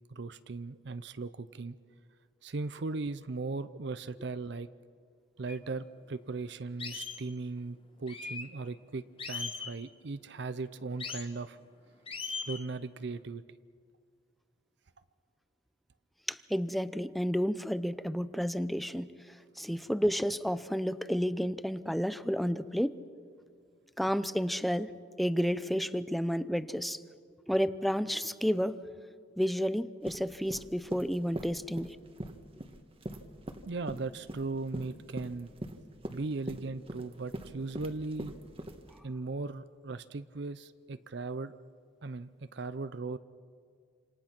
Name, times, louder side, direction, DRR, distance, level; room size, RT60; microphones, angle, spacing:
voice 1, 0.1-1.7 2.4-4.7 5.4-11.6 12.5-13.4 33.7-35.5 36.1-38.3 39.0-41.6 42.0-43.2, right 3 dB, 60° right, 13 dB, 0.6 m, -38 dB
sound 1, 5.5-5.6 6.1-6.2 6.8-7.2 8.1-8.5 9.2-9.8 11.0-11.3 12.1-12.6, left 5 dB, 30° left, 1.7 m, -39 dB
voice 2, 16.3-19.1 19.6-23.0 24.0-24.9 25.2-27.0 27.5-28.8 29.4-32.0, equal, ahead, 14 dB, 0.6 m, -31 dB
sound 2, 30.0-39.0, right 1 dB, 30° right, 1.4 m, -42 dB
27.5 x 27.5 x 6.0 m, 2.1 s
head